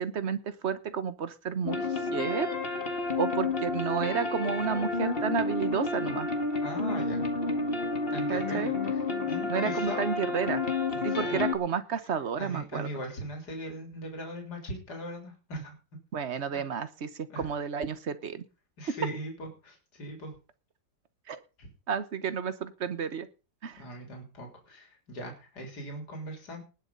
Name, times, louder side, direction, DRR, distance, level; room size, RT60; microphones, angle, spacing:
voice 1, 0.0-1.8 2.1-2.5 3.2-6.3 8.3-8.7 9.5-10.6 11.0-12.9 16.1-18.5 21.3-21.4 21.9-23.3 23.6-23.8, right 7 dB, 45° right, 13 dB, 1.1 m, -31 dB
sound 1, 1.6-11.6, left 3 dB, 30° left, 2.1 m, -30 dB
voice 2, 6.6-7.2 8.1-10.1 10.9-11.4 12.4-15.7 16.5-16.7 17.3-17.5 18.8-20.3 21.6-21.7 23.8-26.6, equal, 60° left, 2 dB, 4.2 m, -40 dB
19.5 x 7.0 x 5.4 m, 0.33 s
omnidirectional pair, 2.0 m